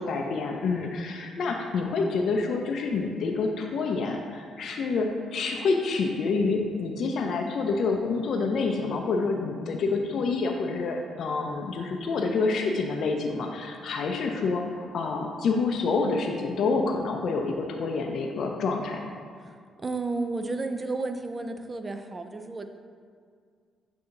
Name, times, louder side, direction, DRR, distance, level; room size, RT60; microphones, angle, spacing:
voice 1, 0.0-19.1, left 4 dB, 65° left, 2 dB, 0.5 m, -27 dB
voice 2, 19.8-22.7, right 3 dB, 25° right, 7 dB, 0.4 m, -32 dB
6.4 x 2.8 x 5.7 m, 2.1 s
cardioid pair, 90°, 0 cm